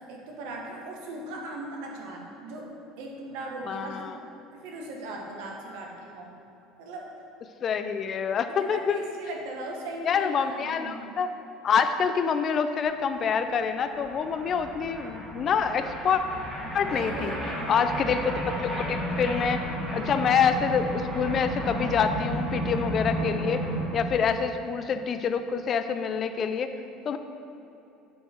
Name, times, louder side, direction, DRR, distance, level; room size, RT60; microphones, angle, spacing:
voice 1, 0.0-2.7 3.0-4.2 4.5-6.3 6.8-7.1 8.6-11.1 16.7-17.9 26.8-26.9, right 2 dB, 80° right, 0 dB, 1.3 m, -39 dB
voice 2, 3.7-4.1 7.6-9.1 10.0-11.3 11.6-16.2 16.7-17.3 17.7-19.6 19.9-23.6 23.9-26.7 27.1-27.2, left 6 dB, 30° left, 9 dB, 0.3 m, -26 dB
sound 1, 13.0-13.1 13.2-24.1, right 1 dB, 10° right, 1.5 m, -33 dB
9.0 x 4.5 x 4.4 m, 2.9 s
cardioid pair, 160°, 0 cm